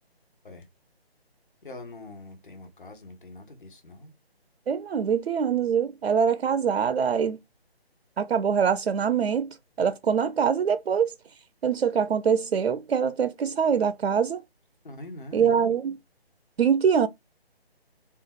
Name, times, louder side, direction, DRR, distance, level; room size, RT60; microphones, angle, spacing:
voice 1, 1.6-4.1 14.8-15.5, left 2 dB, 50° left, 1.2 m, -43 dB
voice 2, 4.7-7.4 8.2-11.1 11.6-14.4 15.3-16.0 16.6-17.1, right 7 dB, 75° right, 0.5 m, -24 dB
3.8 x 2.4 x 3.5 m
figure-of-eight pair, 150°, 32 cm